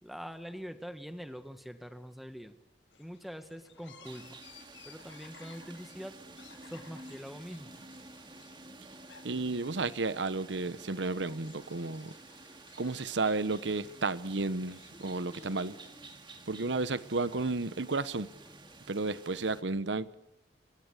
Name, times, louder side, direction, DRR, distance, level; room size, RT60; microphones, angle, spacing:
voice 1, 0.0-2.5 3.0-4.4 4.8-6.2 6.6-7.7, equal, ahead, 1.7 m, -44 dB
sound 1, 2.9-16.0, left 6 dB, 85° left, 6.2 m, -59 dB
sound 2, 4.0-19.6, right 2 dB, 25° right, 2.3 m, -52 dB
voice 2, 9.2-12.1 12.8-15.7 16.5-18.3 18.9-20.1, right 3 dB, 80° right, 1.1 m, -32 dB
sound 3, 10.6-19.4, left 1 dB, 15° left, 3.7 m, -61 dB
27.0 x 22.5 x 8.2 m
head